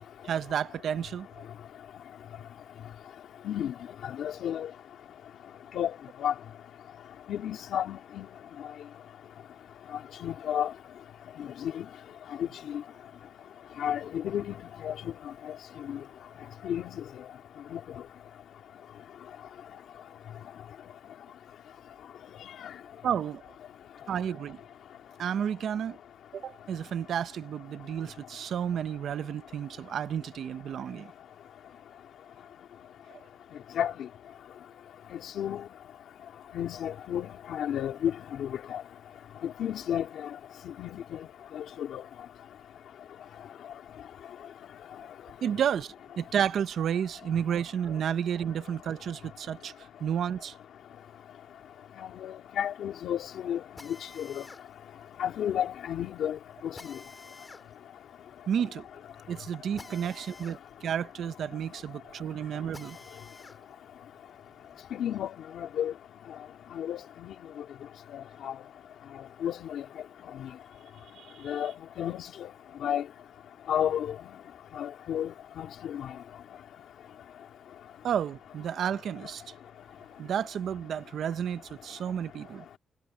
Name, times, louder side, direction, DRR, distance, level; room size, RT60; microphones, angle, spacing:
voice 1, 0.2-1.5 23.0-23.4 24.1-24.6 25.2-26.0 26.3-31.1 33.1-33.2 45.4-50.5 58.5-58.8 59.3-63.0 71.1-71.6 78.0-79.5 80.2-82.7, right 8 dB, 70° right, 0.9 m, -31 dB
voice 2, 4.2-4.7 5.7-5.9 6.2-6.3 7.3-8.3 10.2-10.7 11.6-11.9 12.4-12.8 13.8-14.5 14.8-15.1 15.9-16.0 16.6-17.0 17.7-17.8 33.8-33.9 35.1-35.6 36.5-38.1 38.4-38.8 39.4-40.1 40.8-41.2 41.5-42.0 52.2-53.6 54.2-54.4 55.2-56.4 56.6-56.9 64.9-65.9 66.7-67.3 68.1-68.5 69.4-69.8 70.4-70.5 71.4-71.7 72.0-72.5 72.8-73.0 73.7-74.1 74.8-76.1, left 10 dB, 80° left, 3.2 m, -32 dB
Drill, 53.8-63.6 64.0-65.7, left 3 dB, 20° left, 4.5 m, -52 dB
cardioid pair, 135°, 0 cm